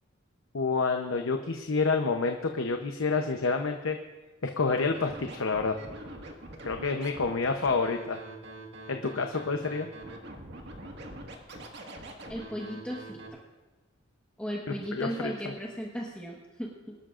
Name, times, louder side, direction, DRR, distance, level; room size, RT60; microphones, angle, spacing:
voice 1, 0.5-4.0 4.4-5.7 6.6-8.2 8.9-9.9 14.9-15.1, left 4 dB, 80° left, 5 dB, 0.8 m, -28 dB
Scratching (performance technique), 4.8-13.3, right 1 dB, 60° right, 1.8 m, -44 dB
voice 2, 12.3-13.4 14.4-16.9, equal, 5° left, -3 dB, 1.4 m, -36 dB
24.0 x 12.5 x 2.5 m, 1.2 s
head